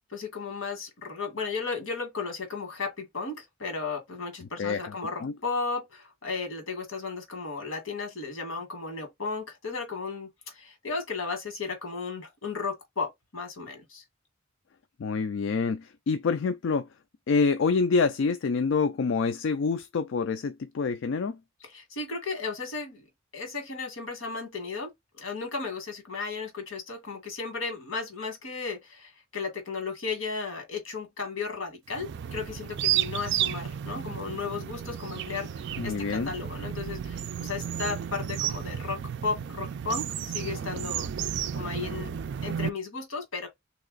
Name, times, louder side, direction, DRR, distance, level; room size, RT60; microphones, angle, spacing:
voice 1, 0.1-14.0 21.6-23.1 23.3-24.9 25.2-41.1 41.5-42.1 42.4-43.5, left 4 dB, 85° left, 1.8 m, -35 dB
voice 2, 4.6-4.9 5.2-5.3 15.0-16.9 17.3-21.4 35.8-36.3, left 4 dB, 65° left, 0.4 m, -26 dB
sound 1, 31.9-42.7, right 9 dB, 60° right, 0.3 m, -32 dB
3.2 x 2.9 x 3.9 m
head